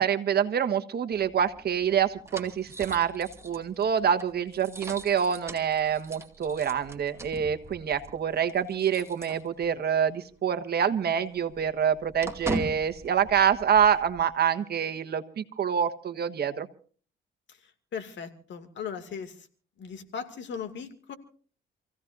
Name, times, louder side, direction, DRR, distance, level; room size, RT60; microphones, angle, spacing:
voice 1, 0.0-16.7, right 8 dB, 55° right, 8 dB, 1.4 m, -26 dB
sound 1, 1.1-10.0 10.3-10.4 10.8-14.2, right 2 dB, 15° right, 2.4 m, -41 dB
voice 2, 17.5-19.5 19.8-21.1, left 6 dB, 65° left, 7 dB, 2.4 m, -38 dB
28.0 x 16.0 x 2.7 m, 0.43 s
cardioid pair, 90°, 20 cm